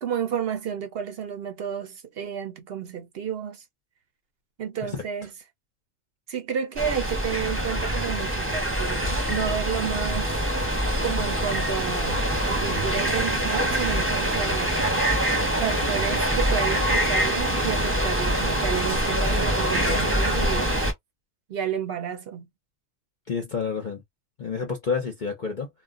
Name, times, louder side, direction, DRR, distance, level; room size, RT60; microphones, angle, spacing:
voice 1, 0.0-3.6 4.6-5.3 6.3-10.4 11.0-14.8 15.6-20.8 21.5-22.5, right 8 dB, 60° right, 0.7 m, -31 dB
sound 1, 6.8-20.9, right 1 dB, 10° right, 0.8 m, -24 dB
voice 2, 23.3-24.0 24.4-25.7, left 5 dB, 45° left, 0.7 m, -29 dB
2.2 x 2.1 x 3.6 m
omnidirectional pair, 1.4 m